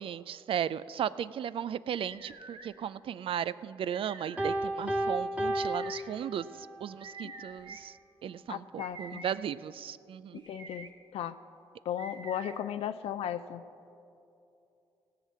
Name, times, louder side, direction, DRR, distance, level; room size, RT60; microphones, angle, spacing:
voice 1, 0.0-6.5 6.8-7.9 8.2-10.4, right 9 dB, 60° right, 17 dB, 0.4 m, -36 dB
sound 1, 1.9-2.7 3.8-4.5 5.5-6.0 7.0-7.8 8.8-9.3 10.4-10.9 12.0-12.6, right 3 dB, 40° right, 1.3 m, -47 dB
Piano, 4.4-6.8, right 1 dB, 15° right, 1.6 m, -32 dB
voice 2, 8.5-9.2 10.5-10.9 11.1-11.4 11.9-13.6, left 10 dB, 75° left, 10 dB, 0.4 m, -35 dB
17.0 x 5.8 x 7.5 m, 2.8 s
supercardioid pair, 55°, 10 cm